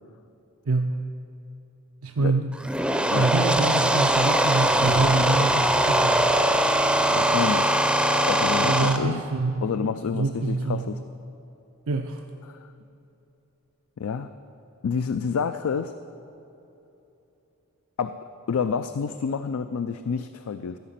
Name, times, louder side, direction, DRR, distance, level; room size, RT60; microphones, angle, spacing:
voice 1, 2.0-2.5 3.1-6.3 8.6-9.6 10.1-10.9 11.9-12.2, right 3 dB, 65° right, 4 dB, 0.5 m, -25 dB
sound 1, 2.5-9.0, right 1 dB, 5° right, 0.5 m, -21 dB
sound 2, 4.8-9.8 10.1-10.3, right 1 dB, 85° right, 2.3 m, -43 dB
voice 2, 7.1-7.7 8.3-9.2 9.6-11.0 12.4-12.7 14.0-14.3 14.8-15.9 18.0-18.2 18.5-20.8, left 6 dB, 75° left, 10 dB, 0.4 m, -28 dB
14.0 x 5.8 x 9.1 m, 3.0 s
head